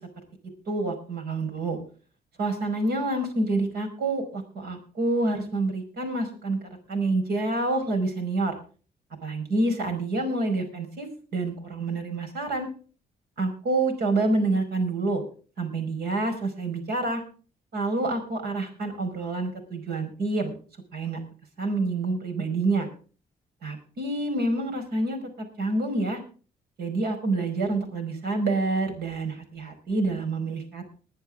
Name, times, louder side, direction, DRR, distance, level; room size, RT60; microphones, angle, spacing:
voice 1, 0.7-1.8 2.4-8.6 9.2-12.7 13.4-15.2 15.6-17.2 17.7-20.5 20.9-21.2 21.6-22.9 23.6-26.2 26.8-30.9, right 2 dB, 90° right, 5 dB, 5.4 m, -27 dB
20.5 x 10.5 x 3.8 m, 0.38 s
cardioid pair, 120°, 16 cm